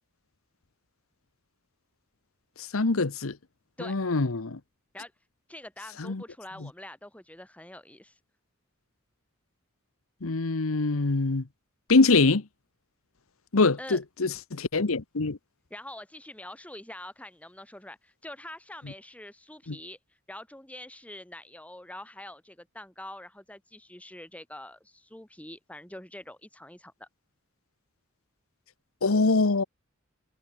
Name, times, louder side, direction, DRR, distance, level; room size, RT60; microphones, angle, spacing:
voice 1, 2.7-3.4 3.8-4.6 6.0-6.2 10.2-11.4 11.9-12.4 13.5-15.4 19.7-19.8 29.0-29.6, left 3 dB, 80° left, 1.1 m, -24 dB
voice 2, 5.5-8.2 13.8-14.0 15.7-20.0 20.3-27.1, left 1 dB, 5° left, 3.4 m, -45 dB
head